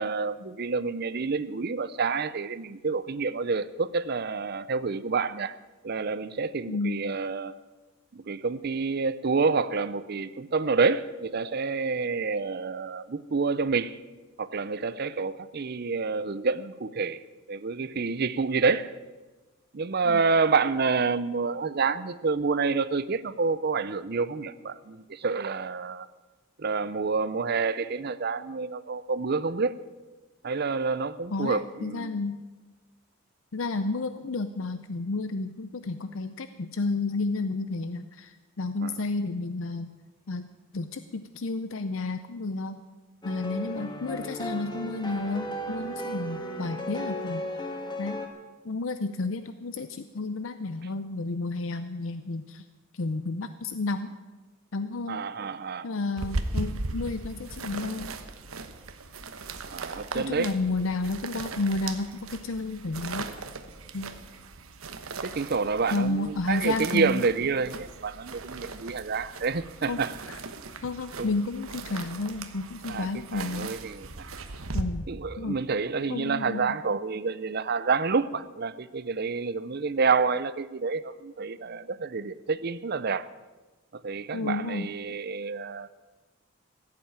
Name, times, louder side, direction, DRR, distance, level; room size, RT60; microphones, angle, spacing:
voice 1, 0.0-5.6 5.8-7.6 8.1-14.0 14.4-17.2 17.5-18.9 19.7-26.1 26.6-29.7 30.4-32.1 38.8-38.9 55.1-55.9 59.7-60.5 65.2-70.2 71.2-71.3 72.9-74.3 75.1-83.3 83.9-85.9, right 4 dB, 50° right, 15 dB, 0.6 m, -28 dB
voice 2, 6.7-7.0 20.0-20.2 31.3-32.4 33.5-39.9 40.3-40.5 40.7-42.8 43.2-47.4 48.0-48.2 48.6-52.6 52.9-54.2 54.7-55.2 55.8-58.1 60.1-63.3 63.9-64.1 65.9-67.2 69.9-70.0 70.3-70.4 70.8-73.8 74.7-75.1 75.4-75.6 76.1-76.7 84.3-84.9, left 3 dB, 70° left, 10 dB, 0.6 m, -31 dB
sound 1, 43.2-48.3, equal, 20° left, 1.4 m, -35 dB
sound 2, 56.2-74.8, right 3 dB, 80° right, 1.1 m, -38 dB
15.0 x 8.6 x 8.7 m, 1.2 s
head